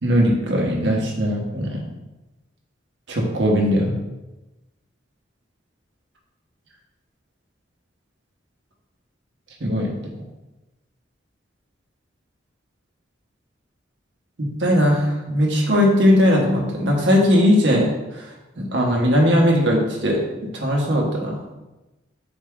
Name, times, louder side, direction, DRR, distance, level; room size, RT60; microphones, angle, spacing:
voice 1, 0.0-1.8 3.1-3.9 9.6-9.9 14.4-18.3 18.6-21.4, equal, 65° right, -1 dB, 0.9 m, -19 dB
4.2 x 3.4 x 3.5 m, 1.1 s
head